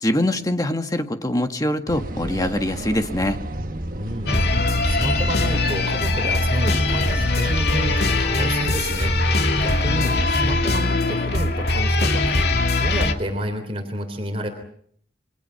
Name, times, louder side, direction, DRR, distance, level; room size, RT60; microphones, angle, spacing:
voice 1, 0.0-3.4, left 1 dB, 20° left, 7 dB, 1.7 m, -23 dB
sound 1, 1.9-10.3, right 1 dB, 50° right, 1.5 m, -33 dB
voice 2, 3.9-14.5, right 1 dB, 35° right, 5 dB, 3.5 m, -30 dB
sound 2, 4.2-13.1, left 2 dB, 60° left, 2.5 m, -21 dB
28.5 x 24.0 x 5.8 m, 0.63 s
head